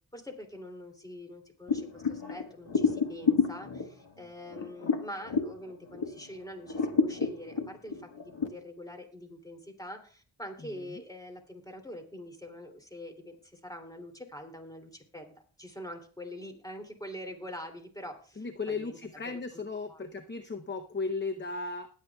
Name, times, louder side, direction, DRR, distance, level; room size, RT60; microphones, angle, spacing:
voice 1, 0.1-15.3 15.6-19.0 19.2-19.4 19.9-20.0, left 1 dB, 10° left, 4 dB, 2.8 m, -44 dB
sound 1, 1.7-6.3 6.6-8.5, left 5 dB, 65° left, 1.5 m, -30 dB
voice 2, 18.4-21.9, left 4 dB, 25° left, 7 dB, 0.7 m, -36 dB
20.5 x 8.2 x 2.3 m, 0.42 s
cardioid pair, 55°, 47 cm